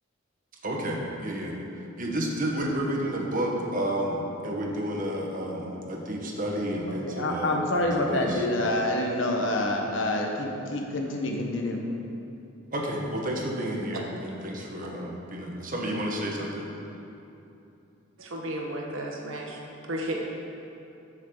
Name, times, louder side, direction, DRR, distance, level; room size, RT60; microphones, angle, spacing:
voice 1, 0.6-1.6 2.0-8.4 12.7-16.7, right 1 dB, 40° right, -1 dB, 1.4 m, -31 dB
voice 2, 6.9-11.8, left 1 dB, 65° left, 1 dB, 1.3 m, -27 dB
voice 3, 18.2-19.6 19.9-20.2, right 1 dB, 85° right, 0 dB, 1.4 m, -33 dB
13.5 x 7.4 x 4.0 m, 2.8 s
head